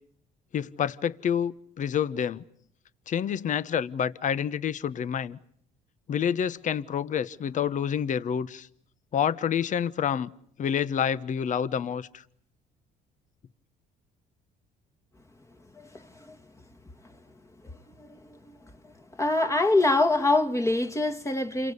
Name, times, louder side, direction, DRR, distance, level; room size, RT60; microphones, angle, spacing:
voice 1, 0.5-2.4 3.1-5.4 6.1-8.7 9.1-10.3 10.6-12.2, left 8 dB, 50° left, 1.1 m, -28 dB
voice 2, 19.2-21.7, left 2 dB, 15° left, 1.7 m, -24 dB
29.0 x 23.5 x 8.3 m
cardioid pair, 110°, 17 cm